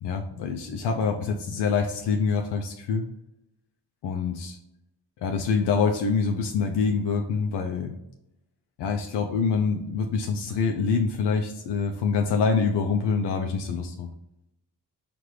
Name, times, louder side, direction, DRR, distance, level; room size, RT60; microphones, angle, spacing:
voice 1, 0.0-3.0 4.0-4.6 5.2-8.0 8.8-14.1, left 5 dB, 85° left, 3 dB, 0.5 m, -25 dB
4.5 x 2.5 x 3.2 m, 0.83 s
cardioid pair, 85°, 41 cm